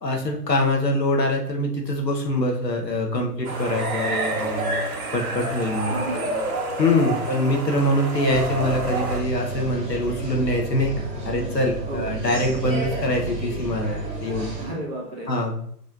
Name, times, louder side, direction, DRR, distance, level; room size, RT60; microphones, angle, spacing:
voice 1, 0.0-4.8 5.1-6.2 6.8-14.5 15.3-15.6, left 1 dB, 85° left, 1 dB, 1.1 m, -24 dB
sound 1, 3.4-9.2, right 2 dB, 60° right, 1.1 m, -28 dB
voice 2, 5.9-6.6 7.0-7.2 11.9-12.2 14.6-15.3, right 2 dB, 10° right, -7 dB, 1.3 m, -33 dB
sound 2, 8.3-14.7, right 3 dB, 30° right, 1.9 m, -32 dB
6.4 x 3.2 x 2.5 m, 0.64 s
figure-of-eight pair, 120°, 49 cm